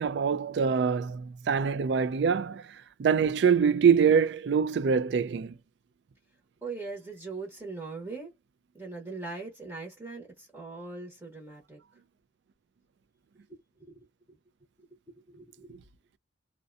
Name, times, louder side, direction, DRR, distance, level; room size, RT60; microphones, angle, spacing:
voice 1, 0.0-5.6, right 6 dB, 70° right, 0.3 m, -25 dB
voice 2, 6.6-8.3 8.7-11.8 15.3-15.8, right 3 dB, 15° right, 0.8 m, -40 dB
2.6 x 2.2 x 2.4 m
head